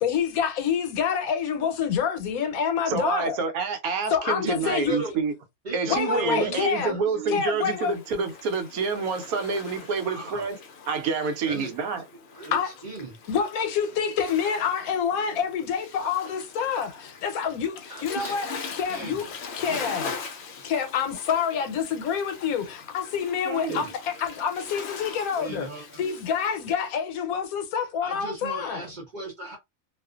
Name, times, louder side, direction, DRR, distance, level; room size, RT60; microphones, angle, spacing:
voice 1, 0.0-3.4 4.1-4.9 5.9-6.9 7.3-7.9 12.5-12.7 13.3-19.3 19.6-20.1 20.6-28.9, left 7 dB, 85° left, 1.1 m, -27 dB
voice 2, 2.9-5.3 5.7-10.6 10.9-12.0 23.4-23.8, right 4 dB, 80° right, 1.0 m, -28 dB
voice 3, 4.4-5.2 5.6-7.4 10.0-10.5 11.4-12.0 12.3-13.1 17.9-18.3 18.9-19.3 19.6-19.9 23.7-23.9 25.4-26.1 28.0-29.6, right 3 dB, 55° right, 0.5 m, -36 dB
Waves surf, 7.5-26.9, left 5 dB, 65° left, 0.7 m, -41 dB
2.4 x 2.4 x 2.3 m
omnidirectional pair, 1.5 m